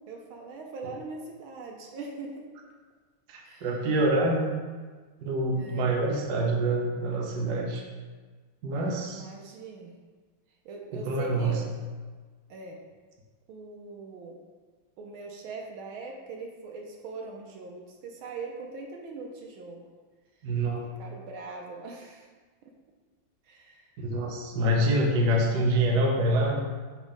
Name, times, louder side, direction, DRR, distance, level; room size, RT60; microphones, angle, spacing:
voice 1, 0.1-2.4 3.4-3.7 5.5-6.1 9.1-9.9 10.6-11.8 12.5-12.8 13.5-14.4 15.0-19.8 21.0-22.3 23.5-23.9, right 3 dB, 75° right, 1 dB, 1.5 m, -41 dB
voice 2, 3.3-4.5 5.2-7.8 8.6-9.2 10.9-11.6 20.4-20.9 24.0-26.6, right 1 dB, 60° right, 0 dB, 1.3 m, -26 dB
5.2 x 4.2 x 5.0 m, 1.4 s
omnidirectional pair, 2.3 m